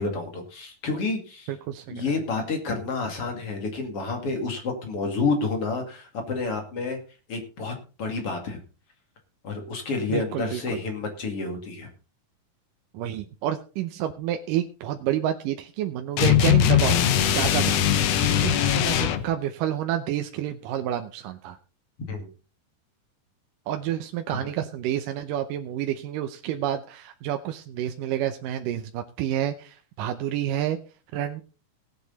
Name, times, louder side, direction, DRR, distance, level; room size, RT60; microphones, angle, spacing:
voice 1, 0.0-1.5 1.9-7.0 7.3-8.6 9.4-11.9 22.1-22.3 24.3-24.4, left 3 dB, 45° left, 4 dB, 3.0 m, -29 dB
voice 2, 1.5-2.0 10.1-10.8 12.9-17.1 17.3-17.8 18.4-21.6 23.7-30.8 31.1-31.4, right 11 dB, 75° right, 6 dB, 2.3 m, -29 dB
sound 1, 16.2-19.3, left 10 dB, 70° left, 1.5 m, -20 dB
18.0 x 8.2 x 4.0 m, 0.35 s
omnidirectional pair, 4.0 m